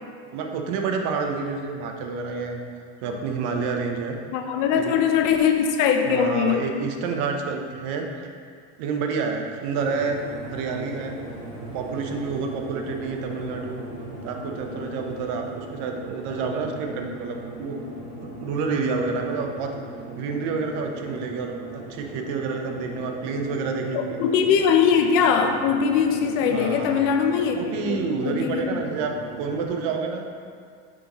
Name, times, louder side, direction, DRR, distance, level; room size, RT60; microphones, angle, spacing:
voice 1, 0.3-2.6 3.0-4.2 4.8-5.0 6.1-8.1 8.8-10.2 10.5-11.2 11.7-13.8 14.2-17.8 18.2-19.7 20.1-24.3 26.5-27.1 27.4-30.3, right 4 dB, 60° right, 3 dB, 0.8 m, -29 dB
voice 2, 4.3-6.6 23.9-28.8, left 7 dB, 65° left, 5 dB, 0.7 m, -21 dB
sound 1, 9.7-29.7, right 1 dB, 25° right, 1.4 m, -39 dB
6.1 x 5.3 x 3.0 m, 2.2 s
cardioid pair, 155°, 33 cm